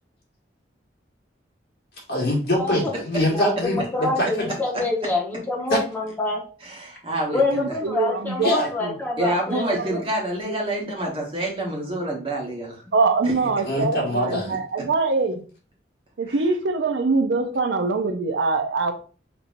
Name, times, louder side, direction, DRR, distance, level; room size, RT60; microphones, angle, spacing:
voice 1, 2.1-4.3 5.7-5.8 8.4-8.7 13.6-14.5, equal, 60° left, -2 dB, 1.8 m, -23 dB
voice 2, 3.3-6.4 7.3-10.0 12.9-13.0, left 3 dB, 10° left, -3 dB, 1.1 m, -26 dB
voice 3, 6.6-7.4 9.2-12.7 13.2-13.3 14.7-14.8 16.3-16.4, right 1 dB, 30° right, -2 dB, 1.2 m, -27 dB
voice 4, 7.4-8.5 8.8-8.9 9.9-10.0 12.9-15.4 16.2-18.9, right 3 dB, 90° right, 7 dB, 0.6 m, -23 dB
5.3 x 3.0 x 2.5 m, 0.39 s
head